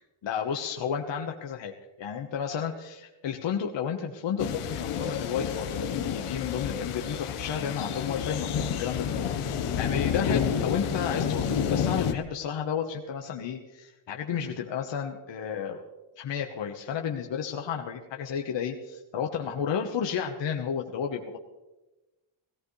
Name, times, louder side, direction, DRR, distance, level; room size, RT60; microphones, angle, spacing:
voice 1, 0.2-1.7 2.0-15.8 16.2-21.4, left 7 dB, 60° left, 2 dB, 1.3 m, -32 dB
sound 1, 4.4-12.1, left 7 dB, 90° left, 1.3 m, -29 dB
18.0 x 16.5 x 3.3 m, 1.0 s
wide cardioid pair, 155°, 50 cm